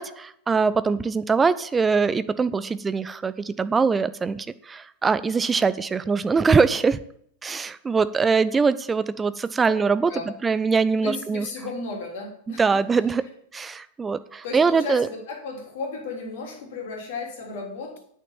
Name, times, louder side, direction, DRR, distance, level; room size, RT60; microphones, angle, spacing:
voice 1, 0.0-7.0 7.4-10.1 10.4-11.5 12.5-13.2 13.5-15.1, right 5 dB, 15° right, 14 dB, 0.6 m, -22 dB
voice 2, 11.0-12.8 14.4-18.0, left 3 dB, 55° left, 0 dB, 3.3 m, -34 dB
8.5 x 6.5 x 7.1 m, 0.67 s
figure-of-eight pair, 90°, 0 cm